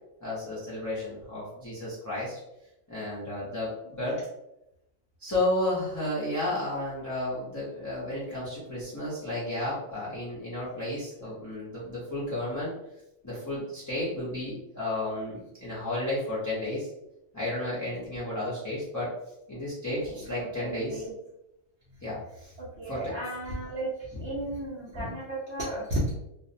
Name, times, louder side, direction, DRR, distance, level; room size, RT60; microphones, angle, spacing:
voice 1, 0.2-2.4 2.9-4.2 5.2-12.7 13.2-16.9 17.3-19.1 19.5-21.1 22.0-22.5 22.9-23.2 24.1-24.6 24.9-25.1, left 1 dB, 20° left, -9 dB, 0.5 m, -32 dB
voice 2, 20.6-21.1 22.8-23.9 24.2-26.1, right 1 dB, 60° right, -8 dB, 0.8 m, -33 dB
2.4 x 2.0 x 2.6 m, 0.86 s
omnidirectional pair, 1.4 m